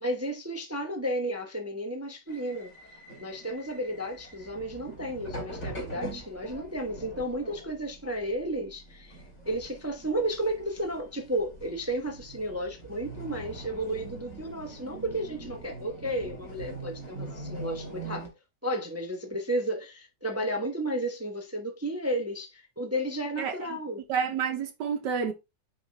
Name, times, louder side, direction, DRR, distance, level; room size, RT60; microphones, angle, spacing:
voice 1, 0.0-2.7 3.2-9.2 9.4-18.3 18.6-24.0, right 1 dB, 15° right, 0.5 m, -33 dB
sound 1, 2.3-18.3, right 2 dB, 50° left, 2.7 m, -43 dB
voice 2, 24.1-25.3, right 6 dB, 75° right, 1.5 m, -29 dB
8.7 x 3.3 x 3.2 m
omnidirectional pair, 1.9 m